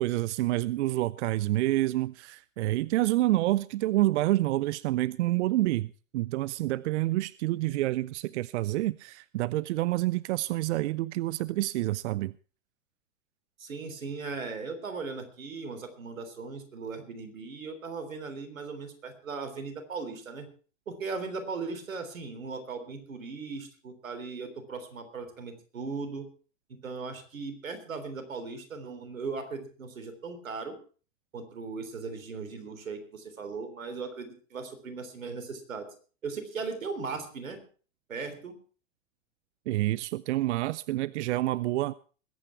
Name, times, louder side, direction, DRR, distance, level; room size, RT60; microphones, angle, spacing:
voice 1, 0.0-12.3 39.7-41.9, right 16 dB, 60° right, 0.5 m, -28 dB
voice 2, 13.6-20.5 20.9-26.3 26.8-30.8 31.3-35.9 36.2-37.6 38.1-38.5, right 4 dB, 90° right, 3.6 m, -38 dB
21.0 x 8.9 x 4.5 m
hypercardioid pair, 115°, 39 cm